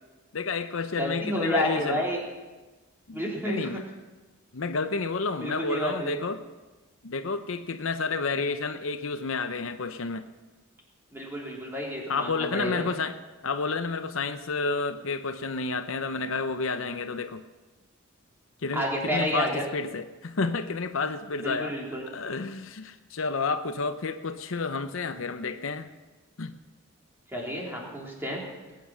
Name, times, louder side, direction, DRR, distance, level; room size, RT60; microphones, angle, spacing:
voice 1, 0.3-2.0 3.1-3.8 4.5-6.4 7.0-10.3 12.1-17.4 18.6-21.8 22.1-25.9 26.4-26.5, left 4 dB, 65° left, 9 dB, 0.7 m, -30 dB
voice 2, 1.0-2.2 3.1-3.8 5.4-6.1 11.1-12.8 18.7-19.6 21.4-22.0 27.3-28.4, equal, 10° right, -3 dB, 3.4 m, -30 dB
20.5 x 9.3 x 6.3 m, 1.2 s
head